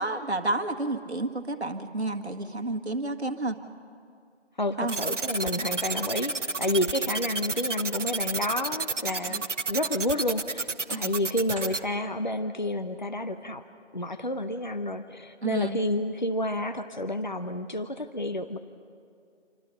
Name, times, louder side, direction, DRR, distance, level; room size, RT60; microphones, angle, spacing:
voice 1, 0.0-3.6 4.8-5.0 9.3-9.4 10.9-11.1 15.4-15.8, right 2 dB, 65° right, 6 dB, 1.9 m, -30 dB
voice 2, 4.6-13.7 13.9-18.6, left 1 dB, 40° left, 9 dB, 0.7 m, -30 dB
sound 1, 4.6-5.2 5.6-6.0 8.1-9.3 9.7-9.9 10.5-11.0 11.4-11.8, right 2 dB, 30° right, 5.1 m, -46 dB
sound 2, 4.9-11.8, right 3 dB, 85° right, 1.0 m, -30 dB
27.5 x 24.5 x 5.6 m, 2.4 s
figure-of-eight pair, 175°, 36 cm